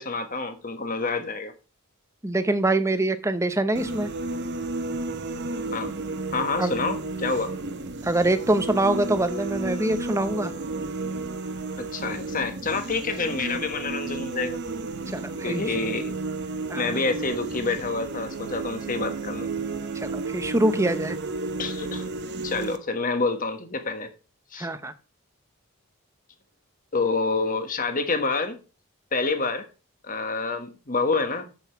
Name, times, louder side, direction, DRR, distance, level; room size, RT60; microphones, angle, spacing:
voice 1, 0.0-1.5 5.7-5.9 6.3-7.5 11.8-14.6 15.4-16.1 16.8-19.5 21.6-22.1 22.4-24.1 24.5-24.7 26.9-28.6 29.1-29.7 30.0-31.5, left 3 dB, 35° left, 1.4 m, -27 dB
voice 2, 2.2-4.1 6.6-6.7 8.0-10.5 15.1-15.8 16.7-16.8 19.9-21.2 24.6-24.9, right 1 dB, 15° right, 0.7 m, -24 dB
sound 1, 3.8-22.8, right 3 dB, 50° right, 0.8 m, -32 dB
7.9 x 7.1 x 4.7 m
head